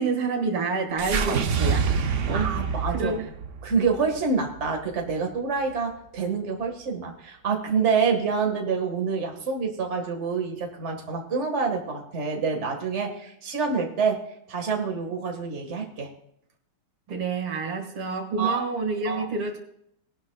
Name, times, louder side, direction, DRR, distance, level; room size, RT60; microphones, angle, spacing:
voice 1, 0.0-1.9 2.3-2.5 2.9-3.3 17.1-19.6, right 4 dB, 85° right, 3 dB, 2.8 m, -28 dB
sound 1, 1.0-5.3, right 5 dB, 60° right, 0.8 m, -27 dB
voice 2, 2.3-3.2 3.6-14.2 14.5-16.1 18.4-18.6 19.0-19.3, right 5 dB, 35° right, 2 dB, 1.9 m, -27 dB
20.5 x 11.0 x 2.4 m, 0.74 s
omnidirectional pair, 2.3 m